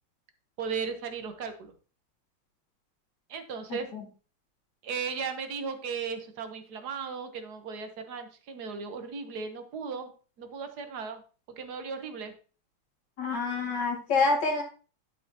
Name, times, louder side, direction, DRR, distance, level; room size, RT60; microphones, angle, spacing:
voice 1, 0.6-1.7 3.3-3.9 4.8-10.1 10.4-11.2 11.6-12.3, right 5 dB, 55° right, 7 dB, 1.4 m, -36 dB
voice 2, 3.7-4.0 13.2-14.6, left 3 dB, 50° left, -2 dB, 2.8 m, -27 dB
11.5 x 6.7 x 2.8 m, 0.36 s
omnidirectional pair, 2.4 m